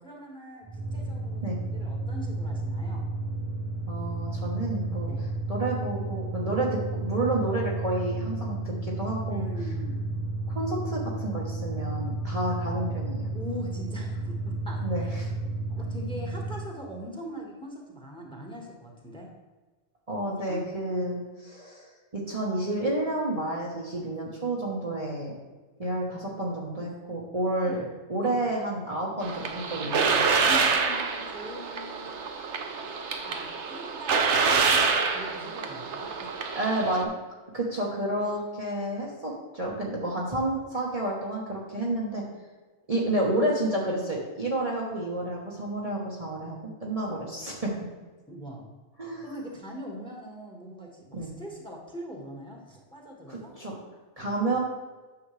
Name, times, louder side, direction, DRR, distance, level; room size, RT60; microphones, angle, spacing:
voice 1, 0.0-1.4 1.7-3.0 5.0-5.3 9.3-10.2 13.3-15.3 15.7-19.3 20.5-20.6 27.6-27.9 28.2-28.6 30.4-32.1 32.8-36.1 48.3-48.7 49.2-53.5 54.2-54.4, equal, 5° left, -1 dB, 1.5 m, -42 dB
sound 1, 0.7-16.8, right 2 dB, 15° right, 0.7 m, -32 dB
voice 2, 3.9-5.1 5.5-9.4 10.5-13.3 14.8-15.3 20.1-25.4 25.8-27.8 28.1-30.3 36.5-37.1 37.5-42.2 42.9-47.7 49.0-49.2 51.1-51.3 53.3-53.7 54.2-54.6, right 1 dB, 30° right, -4 dB, 1.2 m, -30 dB
sound 2, 29.2-37.0, right 5 dB, 75° right, 1.1 m, -27 dB
9.7 x 6.9 x 3.3 m, 1.3 s
omnidirectional pair, 1.2 m